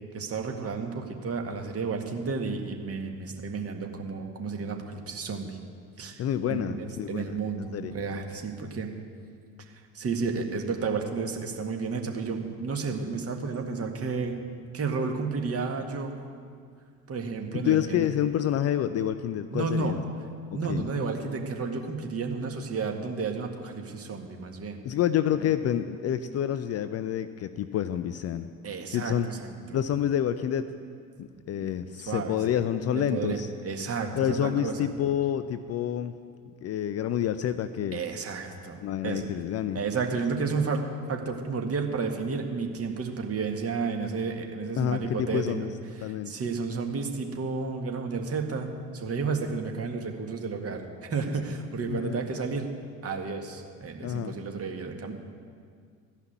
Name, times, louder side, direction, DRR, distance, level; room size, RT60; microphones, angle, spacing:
voice 1, 0.1-5.6 6.0-8.9 9.9-14.4 14.7-16.2 17.1-18.1 19.5-20.0 20.5-24.8 28.6-29.8 32.1-32.4 32.9-34.9 37.9-39.3 39.7-45.7 46.0-52.7 53.0-55.1, right 4 dB, 35° right, 3 dB, 1.8 m, -32 dB
voice 2, 6.2-7.9 17.5-20.0 20.5-20.9 24.8-28.5 28.9-29.3 29.7-30.7 31.2-33.5 34.1-36.1 36.6-38.0 38.8-39.8 44.8-45.7 46.0-46.3 51.9-52.2 54.0-54.4, left 10 dB, 35° left, 11 dB, 0.6 m, -28 dB
14.0 x 5.8 x 9.4 m, 2.1 s
figure-of-eight pair, 65°, 43 cm